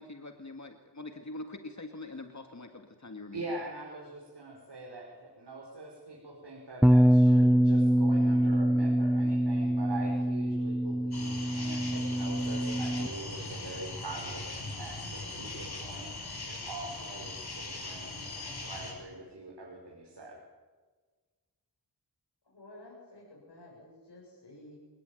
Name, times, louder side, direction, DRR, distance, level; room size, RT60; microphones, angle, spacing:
voice 1, 0.0-3.4, left 2 dB, 45° left, 5 dB, 2.0 m, -44 dB
voice 2, 3.3-20.4, right 2 dB, 80° right, -2 dB, 5.3 m, -43 dB
Bass guitar, 6.8-13.1, equal, ahead, 0.8 m, -24 dB
sound 1, 11.1-18.9, left 2 dB, 70° left, 7.2 m, -40 dB
voice 3, 22.4-24.8, left 1 dB, 90° left, -2 dB, 8.0 m, -52 dB
27.5 x 19.0 x 9.3 m, 1.4 s
wide cardioid pair, 85°, 40 cm